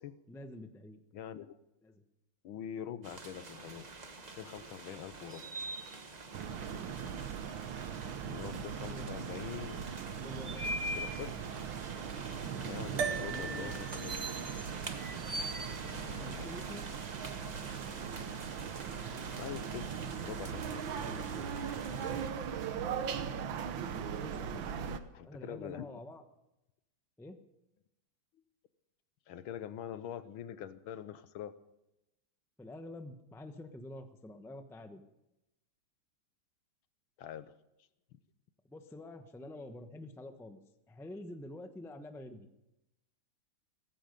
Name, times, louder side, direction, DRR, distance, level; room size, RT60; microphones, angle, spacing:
voice 1, 0.3-1.0 1.8-2.0 8.8-9.1 10.2-10.8 13.2-13.8 16.1-16.9 20.9-22.2 23.0-23.1 24.1-24.7 25.2-26.2 27.2-27.4 32.6-35.0 38.7-40.6 40.9-42.5, left 1 dB, ahead, 7 dB, 0.5 m, -48 dB
voice 2, 1.1-1.6 2.4-3.9 4.3-5.4 8.2-9.8 11.0-11.4 12.6-14.3 15.8-16.5 19.3-21.0 24.8-25.9 29.3-31.5 37.2-37.6, left 10 dB, 75° left, 13 dB, 1.6 m, -44 dB
sound 1, 3.0-22.3, right 1 dB, 25° right, 0.9 m, -45 dB
sound 2, 6.3-25.0, right 7 dB, 65° right, 1.6 m, -39 dB
sound 3, 13.0-17.6, right 6 dB, 85° right, 2.3 m, -42 dB
17.0 x 15.5 x 5.3 m, 0.90 s
omnidirectional pair, 2.4 m